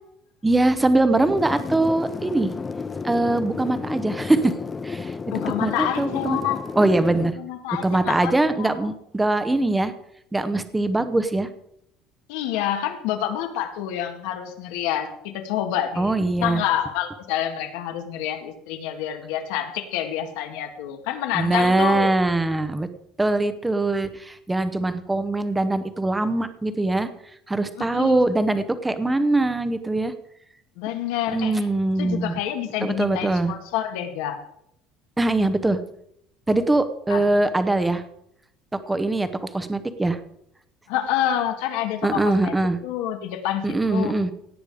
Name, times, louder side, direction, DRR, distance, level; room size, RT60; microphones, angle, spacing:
voice 1, 0.4-2.5 3.0-4.5 4.8-5.1 5.6-6.4 6.8-7.4 7.8-9.9 10.3-11.5 16.0-16.6 21.3-22.9 23.2-27.1 27.5-30.1 31.3-32.3 32.8-33.5 35.2-35.8 36.5-38.0 38.9-40.2 42.0-42.8 43.6-44.3, right 2 dB, 5° right, 11 dB, 0.8 m, -22 dB
sound 1, 1.2-7.3, left 4 dB, 15° left, 0.4 m, -32 dB
voice 2, 5.3-6.6 7.4-8.3 8.6-8.9 12.3-22.2 27.8-28.2 30.8-31.7 32.0-34.4 37.1-37.3 40.9-42.5 42.8-44.2, left 11 dB, 85° left, 5 dB, 2.0 m, -28 dB
17.5 x 8.9 x 4.9 m, 0.76 s
cardioid pair, 180°, 0 cm